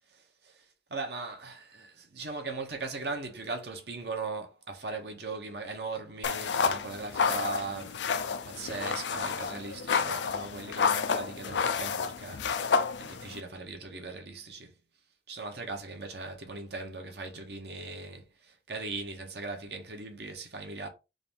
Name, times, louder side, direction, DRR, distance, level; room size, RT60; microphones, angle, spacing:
voice 1, 0.1-8.1 8.4-14.7 15.3-20.9, right 3 dB, 65° right, 1.1 m, -39 dB
sound 1, 6.2-13.4, left 6 dB, 85° left, 0.5 m, -30 dB
3.8 x 2.7 x 3.6 m
head